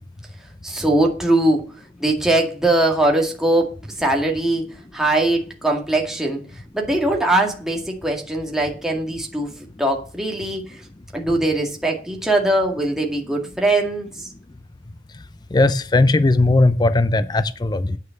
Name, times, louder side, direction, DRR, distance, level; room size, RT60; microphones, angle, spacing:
voice 1, 0.6-1.6 2.0-6.4 6.7-10.8 11.1-14.3, right 1 dB, 5° right, 1.9 m, -21 dB
voice 2, 15.5-18.0, left 2 dB, 20° left, 0.4 m, -17 dB
9.0 x 6.5 x 7.1 m
head